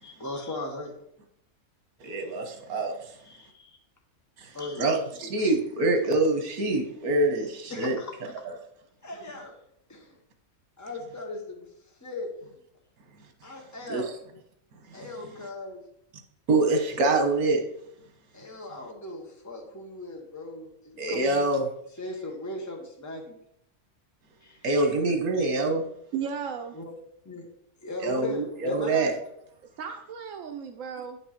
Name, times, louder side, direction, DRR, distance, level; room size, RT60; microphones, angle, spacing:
voice 1, 0.0-0.9 3.2-3.8 4.5-4.9 7.7-8.1 9.0-9.5 9.9-10.2 10.8-11.7 12.0-12.3 13.4-14.1 14.9-15.8 18.3-21.5 22.0-23.4 24.4-24.9 26.7-26.9 27.2-27.5 27.8-29.2, left 2 dB, 10° left, 0 dB, 1.3 m, -38 dB
voice 2, 2.0-3.1 4.4-8.0 8.4-8.5 13.9-14.0 14.9-15.1 16.5-17.6 21.0-21.7 24.6-25.9 28.0-29.1, right 2 dB, 85° right, 5 dB, 1.7 m, -25 dB
voice 3, 26.1-26.8 29.8-31.2, right 7 dB, 70° right, 3 dB, 1.0 m, -35 dB
9.2 x 5.4 x 4.4 m, 0.74 s
omnidirectional pair, 1.5 m